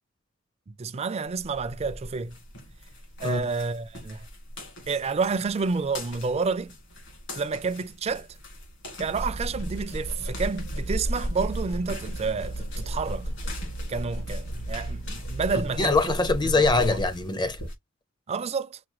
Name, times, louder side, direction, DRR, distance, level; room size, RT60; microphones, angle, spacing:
voice 1, 0.8-2.4 3.2-4.3 4.9-6.7 7.3-8.3 9.0-13.2 13.9-16.1 16.8-16.9 18.3-18.8, right 4 dB, 30° right, 0.4 m, -29 dB
sound 1, 1.3-17.7, left 1 dB, 65° left, 2.1 m, -44 dB
sound 2, 9.0-17.3, right 1 dB, 80° left, 2.1 m, -33 dB
voice 2, 15.5-17.6, left 3 dB, 20° left, 0.5 m, -23 dB
5.8 x 2.2 x 3.0 m
head